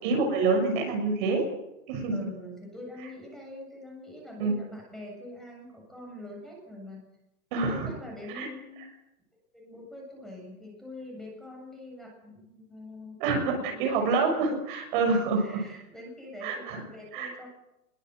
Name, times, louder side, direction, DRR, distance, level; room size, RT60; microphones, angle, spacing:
voice 1, 0.0-1.4 1.9-2.1 4.4-4.6 7.5-7.9 8.3-8.5 13.2-15.6 16.4-16.8 17.1-17.3, right 3 dB, 35° right, 3 dB, 6.6 m, -26 dB
voice 2, 2.1-7.0 7.6-8.9 9.5-14.4 15.4-17.5, left 1 dB, ahead, -1 dB, 7.4 m, -44 dB
24.5 x 23.0 x 8.0 m, 0.89 s
hypercardioid pair, 170°, 45 cm